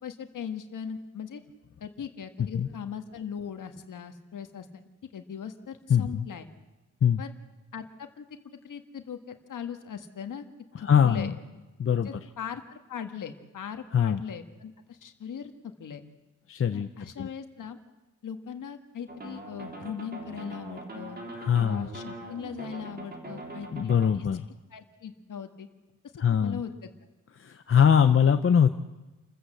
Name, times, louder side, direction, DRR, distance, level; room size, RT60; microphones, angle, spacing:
voice 1, 0.0-1.4 1.8-4.8 5.1-6.5 7.2-7.3 7.7-8.2 8.6-10.4 10.8-11.4 12.0-16.0 16.7-17.8 18.2-21.2 21.6-24.3 24.7-25.7 26.1-26.9, left 7 dB, 80° left, 7 dB, 1.7 m, -39 dB
voice 2, 5.9-6.2 7.0-7.2 10.8-11.3 11.8-12.1 13.9-14.2 16.5-16.9 17.2-17.3 21.4-21.9 23.7-24.5 26.2-26.6 27.4-28.7, left 8 dB, 45° left, 8 dB, 0.7 m, -22 dB
sound 1, 19.1-24.1, right 1 dB, 30° right, 3.5 m, -41 dB
28.0 x 15.0 x 7.9 m, 1.1 s
wide cardioid pair, 175°, 31 cm